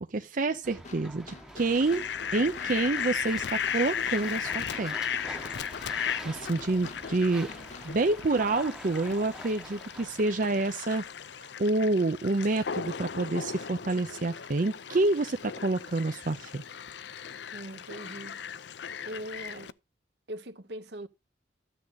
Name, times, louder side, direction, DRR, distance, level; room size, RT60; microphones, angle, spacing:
voice 1, 0.1-2.0 2.3-5.0 6.2-7.5 7.8-11.0 11.4-16.6, right 2 dB, 50° right, 0.6 m, -28 dB
sound 1, 0.6-11.3, right 1 dB, 5° right, 0.9 m, -46 dB
sound 2, 0.8-7.9, left 4 dB, 40° left, 1.0 m, -50 dB
Fowl, 1.6-19.7, left 7 dB, 70° left, 0.5 m, -36 dB
voice 2, 17.5-18.4 19.0-19.7 20.3-21.1, right 1 dB, 65° right, 1.1 m, -41 dB
13.0 x 7.5 x 4.0 m
head